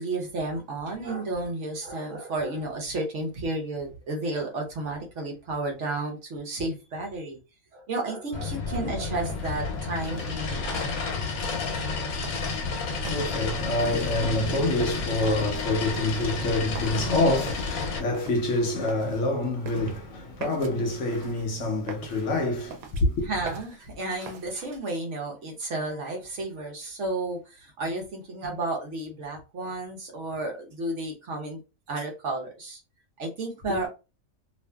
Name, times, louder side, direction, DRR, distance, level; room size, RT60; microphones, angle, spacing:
voice 1, 0.0-7.4 7.7-10.7 23.2-31.6 31.9-32.8 33.2-33.9, right 2 dB, 60° right, 1.0 m, -32 dB
sound 1, 8.3-18.0, left 4 dB, 90° left, 1.1 m, -31 dB
sound 2, 9.2-24.8, right 6 dB, 85° right, 1.1 m, -45 dB
voice 2, 12.3-23.3 33.7-33.9, left 2 dB, 65° left, 0.9 m, -27 dB
2.6 x 2.4 x 2.2 m
omnidirectional pair, 1.5 m